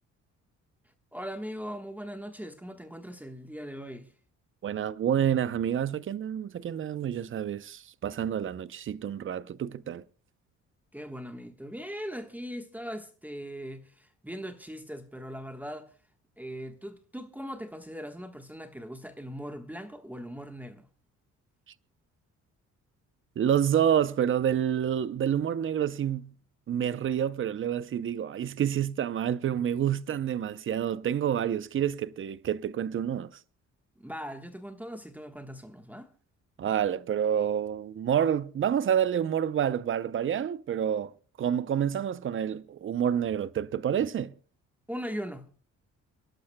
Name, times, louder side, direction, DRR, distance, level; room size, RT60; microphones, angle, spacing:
voice 1, 1.1-4.1 10.9-15.9 16.4-20.9 34.0-36.1 44.9-45.5, equal, 5° right, 1.3 m, -40 dB
voice 2, 4.6-10.0 23.4-26.3 26.7-33.3 36.6-41.1 41.4-44.3, right 9 dB, 45° right, 0.6 m, -28 dB
30.0 x 11.5 x 2.2 m
cardioid pair, 90°, 30 cm